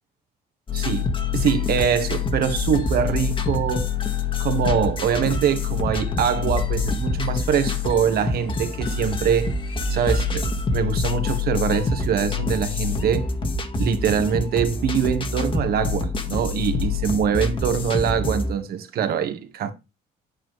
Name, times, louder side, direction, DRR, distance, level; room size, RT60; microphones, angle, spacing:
sound 1, 0.7-18.5, left 4 dB, 30° left, 1.6 m, -26 dB
voice 1, 0.7-3.9 4.4-9.5 9.9-13.3 13.8-19.7, right 7 dB, 65° right, 1.8 m, -23 dB
9.1 x 8.7 x 3.2 m
cardioid pair, 110°, 17 cm